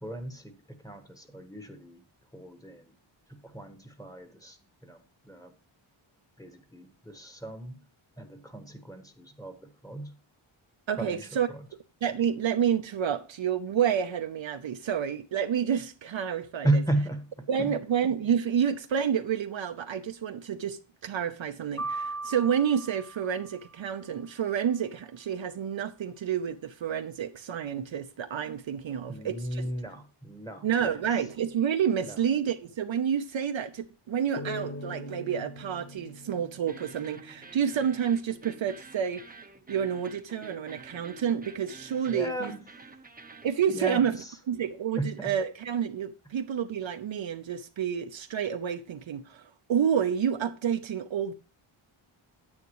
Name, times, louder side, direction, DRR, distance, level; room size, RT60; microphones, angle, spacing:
voice 1, 0.0-2.0 2.3-2.9 3.3-5.5 6.4-7.8 8.2-10.1 11.0-11.3 11.5-11.6 16.6-17.7 29.1-31.0 32.0-32.2 42.0-42.6 43.7-44.3 45.0-45.3, right 1 dB, 5° left, 1.3 m, -34 dB
voice 2, 10.9-11.5 12.0-16.8 17.5-29.6 30.6-39.2 39.7-42.5 43.4-44.1 44.5-51.3, right 8 dB, 65° right, 0.8 m, -29 dB
sound 1, 21.8-23.9, right 3 dB, 45° left, 2.3 m, -38 dB
sound 2, 34.4-37.7, left 1 dB, 30° left, 0.9 m, -42 dB
sound 3, 36.7-43.5, right 3 dB, 15° right, 0.8 m, -49 dB
9.6 x 8.6 x 3.0 m
wide cardioid pair, 90°, 50 cm